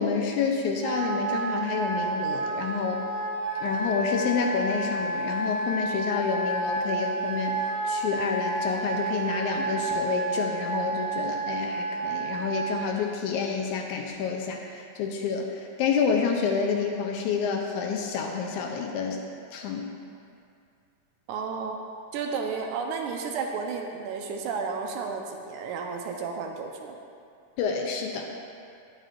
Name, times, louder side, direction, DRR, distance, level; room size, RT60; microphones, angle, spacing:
voice 1, 0.0-3.0 3.6-7.6 7.9-19.2 19.5-19.9 27.6-28.3, left 5 dB, 80° left, 2 dB, 1.9 m, -28 dB
Wind instrument woodwind instrument, 0.8-12.8, right 2 dB, 65° right, 2.4 m, -30 dB
voice 2, 21.3-21.8 22.1-27.0, right 5 dB, 80° right, 2 dB, 1.9 m, -32 dB
10.5 x 9.0 x 2.5 m, 2.4 s
omnidirectional pair, 3.7 m